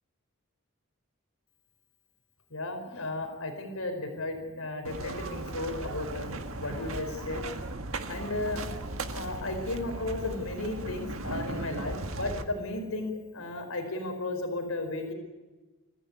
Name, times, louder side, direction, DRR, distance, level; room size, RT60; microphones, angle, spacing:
voice 1, 2.5-7.4 8.1-8.6 9.0-15.1, left 2 dB, 70° left, 5 dB, 4.8 m, -34 dB
sound 1, 4.8-12.4, right 2 dB, 65° right, 1.8 m, -37 dB
25.5 x 15.0 x 9.7 m, 1.2 s
head